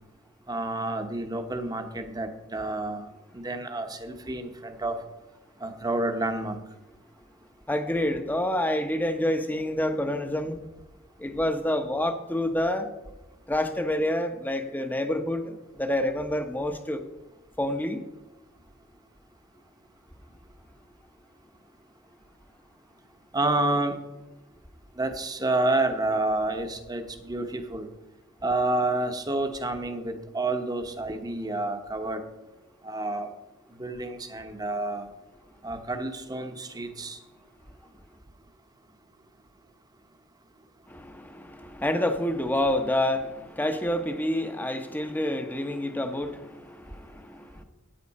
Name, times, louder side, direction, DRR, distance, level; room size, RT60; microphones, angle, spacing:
voice 1, 0.5-3.1 3.3-4.9 5.6-6.6 23.3-24.0 25.0-27.9 28.4-32.2 32.8-33.3 33.8-35.1 35.6-37.2, right 2 dB, 20° right, 1.0 m, -29 dB
voice 2, 7.7-10.6 11.2-12.9 13.5-17.0 17.6-18.0 40.9-47.6, left 1 dB, 10° left, 0.8 m, -28 dB
13.5 x 9.7 x 4.2 m
head